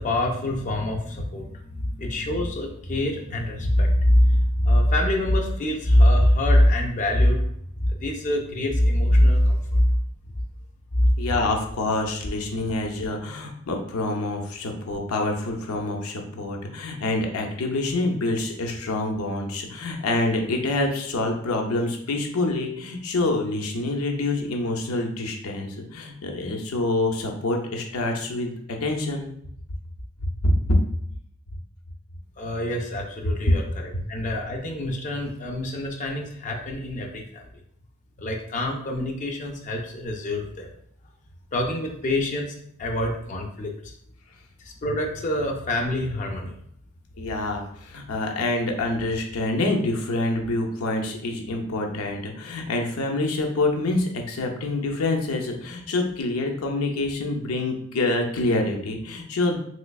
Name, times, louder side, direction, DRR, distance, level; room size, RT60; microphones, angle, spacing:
voice 1, 0.0-7.4 7.8-10.0 10.9-11.1 32.4-37.4 38.2-40.7 41.5-43.9 44.6-46.5, left 1 dB, 35° left, 1 dB, 0.4 m, -23 dB
voice 2, 11.2-28.5 28.8-29.3 30.2-30.8 33.5-33.6 47.2-59.6, left 2 dB, 85° left, 2 dB, 0.6 m, -26 dB
3.3 x 3.1 x 2.3 m, 0.69 s
head